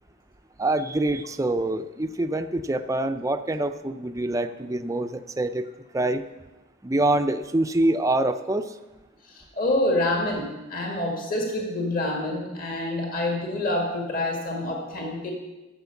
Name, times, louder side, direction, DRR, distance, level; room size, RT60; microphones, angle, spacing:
voice 1, 0.6-5.7 5.9-6.2 6.8-8.8, right 2 dB, 15° right, 8 dB, 0.4 m, -25 dB
voice 2, 9.2-15.3, left 1 dB, 45° left, 0 dB, 2.1 m, -27 dB
12.0 x 7.7 x 7.1 m, 1.1 s
head